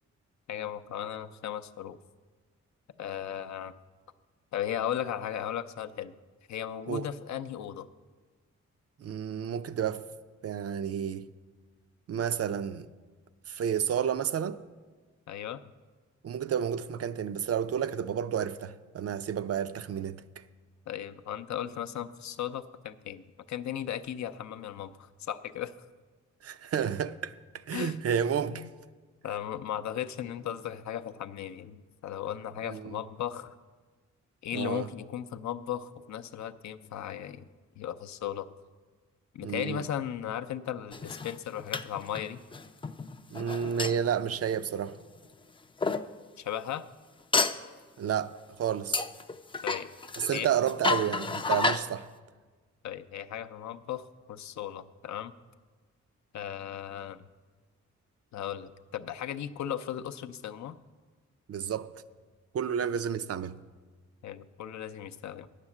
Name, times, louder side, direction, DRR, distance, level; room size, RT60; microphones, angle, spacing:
voice 1, 0.5-2.0 3.0-3.7 4.5-6.1 6.5-7.9 15.3-15.6 20.9-25.7 27.7-28.0 28.5-28.7 29.2-33.5 34.4-37.4 37.8-38.5 39.3-42.4 46.4-46.8 49.6-49.9 50.3-50.5 52.8-55.3 56.3-57.3 58.3-60.8 64.2-65.5, left 10 dB, 70° left, 0.5 m, -36 dB
voice 2, 9.0-10.1 10.4-11.3 12.1-12.9 13.5-14.6 16.2-20.2 26.4-27.4 27.7-28.7 32.7-33.0 34.5-34.9 39.4-39.8 43.3-45.0 48.0-49.0 50.2-52.1 61.5-61.9 62.5-63.6, right 8 dB, 55° right, 0.5 m, -31 dB
sound 1, 40.9-45.2 45.8-46.1 47.3-47.7 48.9-51.9, left 4 dB, 20° left, 0.4 m, -31 dB
9.6 x 6.7 x 7.2 m
cardioid pair, 80°, 29 cm